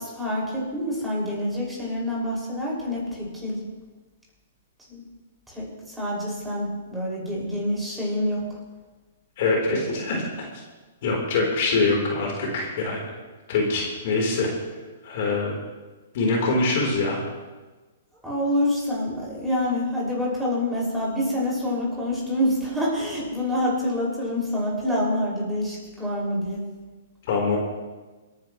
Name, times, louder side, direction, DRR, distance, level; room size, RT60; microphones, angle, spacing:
voice 1, 0.0-3.7 4.9-5.0 5.5-8.6 18.2-26.7, left 1 dB, 5° right, -5 dB, 5.7 m, -27 dB
voice 2, 9.4-10.5 11.0-13.0 13.5-14.5 15.0-15.5 16.1-17.2 27.3-27.6, left 3 dB, 55° left, -1 dB, 3.7 m, -24 dB
27.5 x 10.0 x 3.1 m, 1.2 s
hypercardioid pair, 130°, 0 cm